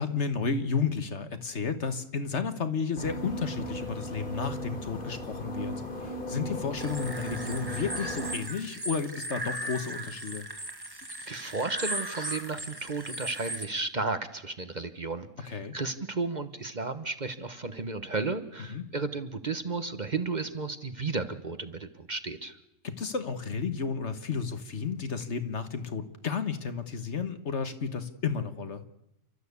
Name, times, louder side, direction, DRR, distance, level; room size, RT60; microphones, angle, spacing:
voice 1, 0.0-10.5 15.5-15.7 18.7-18.9 22.8-28.8, left 5 dB, 60° left, 10 dB, 1.7 m, -32 dB
sound 1, 3.0-8.4, equal, 40° left, 3.0 m, -37 dB
sound 2, 6.8-13.7, right 1 dB, 15° right, 1.9 m, -37 dB
voice 2, 11.3-22.6, right 3 dB, 35° right, 10 dB, 1.2 m, -33 dB
29.0 x 13.0 x 8.4 m, 0.84 s
omnidirectional pair, 1.3 m